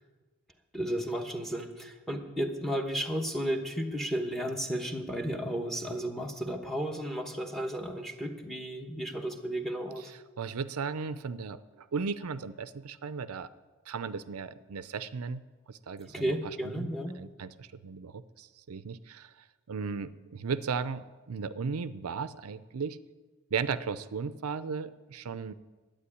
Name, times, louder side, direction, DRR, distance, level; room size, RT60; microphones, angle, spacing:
voice 1, 0.7-10.1 16.1-17.1, right 1 dB, ahead, 5 dB, 1.1 m, -33 dB
voice 2, 10.4-13.5 13.9-15.4 15.7-16.3 16.6-23.0 23.5-25.5, right 5 dB, 75° right, 14 dB, 0.5 m, -36 dB
11.5 x 8.8 x 9.8 m, 1.3 s
head